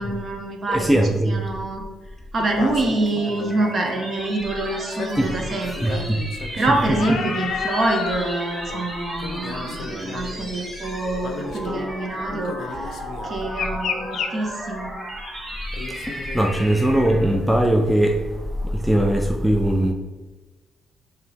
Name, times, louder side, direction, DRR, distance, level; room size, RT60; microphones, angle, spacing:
voice 1, 0.0-1.0 1.2-1.8 2.3-6.1 6.5-15.0, right 2 dB, 45° right, 2 dB, 0.9 m, -26 dB
voice 2, 0.7-1.3 5.2-5.3 5.8-6.2 16.0-19.9, right 1 dB, 5° right, 2 dB, 0.4 m, -20 dB
sound 1, 2.4-3.7 4.9-8.3 8.7-8.9 9.2-10.7 11.2-11.9 12.3-14.3 15.7-16.9 17.6-17.7, left 6 dB, 70° left, 0.4 m, -32 dB
sound 2, 2.8-17.4, equal, 20° right, 1.1 m, -35 dB
4.5 x 2.9 x 3.4 m, 1.2 s
cardioid pair, 90°, 0 cm